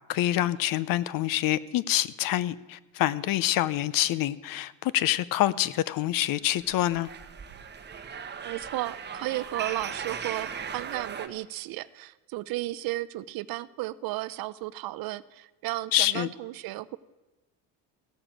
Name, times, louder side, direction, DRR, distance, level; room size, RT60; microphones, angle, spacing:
voice 1, 0.1-7.1 15.9-16.3, left 14 dB, 60° left, 19 dB, 0.7 m, -26 dB
sound 1, 6.6-11.3, right 7 dB, 25° right, 1.0 m, -38 dB
voice 2, 8.4-17.0, right 17 dB, 60° right, 16 dB, 0.6 m, -34 dB
16.0 x 6.9 x 7.5 m, 1.1 s
cardioid pair, 115°, 40 cm